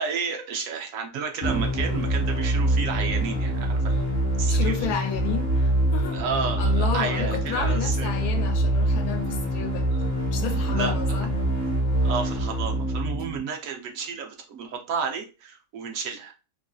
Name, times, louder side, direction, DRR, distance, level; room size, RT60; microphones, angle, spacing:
voice 1, 0.0-4.1 4.4-4.7 6.1-8.1 9.9-10.1 10.7-10.9 12.0-16.3, right 6 dB, 65° right, 1.0 m, -31 dB
sound 1, 1.4-13.4, right 1 dB, 40° left, 0.8 m, -25 dB
voice 2, 4.5-6.2 6.6-9.9 10.3-11.3, left 7 dB, 85° left, 1.1 m, -31 dB
3.0 x 2.5 x 2.3 m
omnidirectional pair, 1.6 m